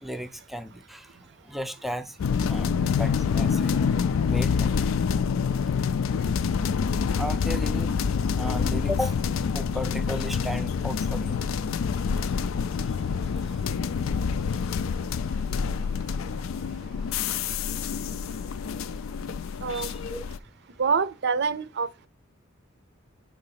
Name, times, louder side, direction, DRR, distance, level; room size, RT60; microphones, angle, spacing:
voice 1, 0.0-1.1 1.5-2.2 2.5-3.7 4.2-4.9 7.2-7.9 8.4-9.2 9.4-11.4 17.7-17.8 19.7-20.2, equal, ahead, 0.4 m, -35 dB
sound 1, 2.2-20.4, left 6 dB, 70° left, 0.3 m, -27 dB
voice 2, 20.8-22.1, right 5 dB, 55° right, 0.5 m, -26 dB
5.1 x 3.9 x 5.7 m
head